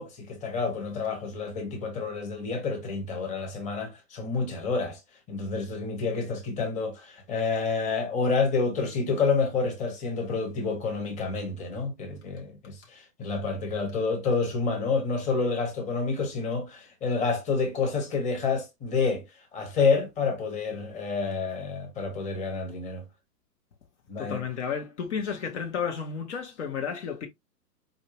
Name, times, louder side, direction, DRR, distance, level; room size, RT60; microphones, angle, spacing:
voice 1, 0.0-5.0 5.3-19.2 19.5-23.0 24.1-24.4, left 4 dB, 15° left, 1.1 m, -28 dB
voice 2, 24.2-27.3, left 7 dB, 45° left, 1.0 m, -32 dB
4.5 x 2.7 x 2.8 m
figure-of-eight pair, 115°, 49 cm